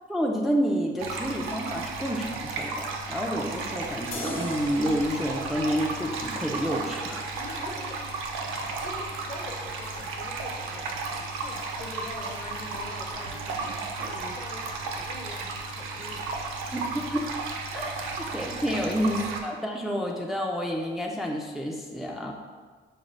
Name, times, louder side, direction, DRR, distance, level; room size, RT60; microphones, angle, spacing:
voice 1, 0.1-7.3 16.7-17.3 17.7-22.3, equal, ahead, 0 dB, 0.3 m, -29 dB
sound 1, 1.0-19.4, right 3 dB, 90° right, 0.5 m, -34 dB
sound 2, 4.1-11.4, left 2 dB, 85° left, 0.7 m, -45 dB
voice 2, 7.4-13.7 14.0-16.2 17.2-17.3, left 2 dB, 35° left, 0 dB, 0.7 m, -44 dB
5.2 x 2.3 x 3.0 m, 1.5 s
cardioid pair, 90°, 20 cm